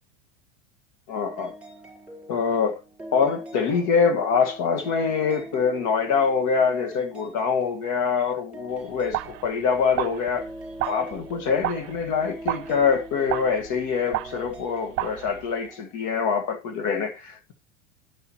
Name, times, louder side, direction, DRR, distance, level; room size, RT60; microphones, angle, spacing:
voice 1, 1.1-1.5 2.3-2.8 3.1-10.5 10.9-17.5, left 6 dB, 50° left, 1.7 m, -24 dB
sound 1, 1.1-15.9, right 1 dB, 5° right, 4.3 m, -43 dB
sound 2, 8.7-15.7, right 17 dB, 40° right, 0.4 m, -33 dB
11.0 x 5.7 x 3.0 m
hypercardioid pair, 105°, 38 cm